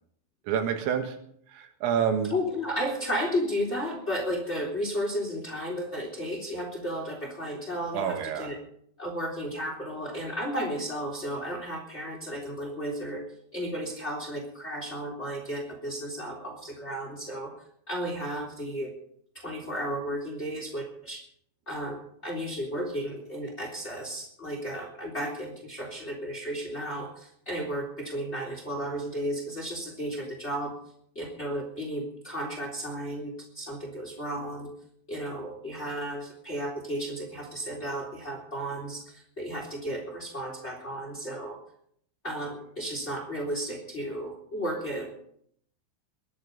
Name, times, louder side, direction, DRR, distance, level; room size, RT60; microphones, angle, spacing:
voice 1, 0.5-1.2 1.5-2.3 7.9-8.5, right 8 dB, 85° right, 6 dB, 4.2 m, -28 dB
voice 2, 2.3-8.6 9.0-13.2 13.5-17.5 17.9-18.9 19.3-21.2 21.7-30.7 31.1-34.7 35.1-41.6 42.2-45.2, equal, 15° left, 2 dB, 2.7 m, -33 dB
21.5 x 11.0 x 5.4 m, 0.67 s
omnidirectional pair, 5.8 m